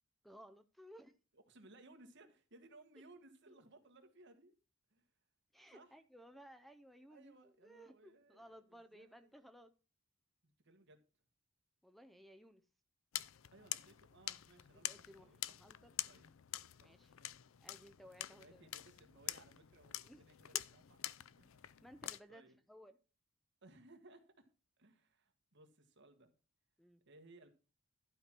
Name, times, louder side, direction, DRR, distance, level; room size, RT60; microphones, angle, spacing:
voice 1, 0.2-1.1 3.5-3.6 5.5-7.4 7.6-9.7 11.8-12.6 14.8-15.9 16.8-17.1 17.6-18.6 20.0-20.2 20.5-20.6 21.8-22.4 22.7-23.0 26.8-27.0, equal, ahead, 0.5 m, -59 dB
voice 2, 1.3-4.6 4.9-5.0 5.7-5.9 7.1-9.3 10.4-11.0 13.5-15.4 16.1-17.4 18.3-21.0 21.3-21.8 22.3-22.6 23.6-24.2 24.8-26.3 27.1-27.5, right 2 dB, 60° right, 1.5 m, -63 dB
sound 1, 13.1-22.2, left 14 dB, 70° left, 0.5 m, -46 dB
12.0 x 4.5 x 6.0 m
head